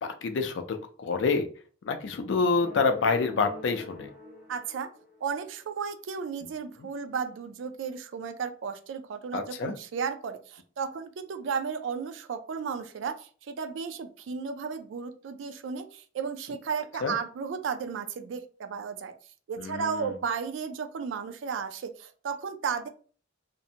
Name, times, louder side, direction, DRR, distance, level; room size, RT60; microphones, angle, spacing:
voice 1, 0.0-1.5 1.9-4.1 9.3-9.7 17.0-17.2 19.6-20.1, left 4 dB, 60° left, 7 dB, 0.4 m, -27 dB
sound 1, 2.6-5.5, left 2 dB, 5° right, 1.1 m, -44 dB
voice 2, 4.5-4.9 5.2-19.1 19.5-22.9, right 6 dB, 70° right, 9 dB, 0.3 m, -34 dB
2.6 x 2.1 x 2.7 m, 0.41 s
head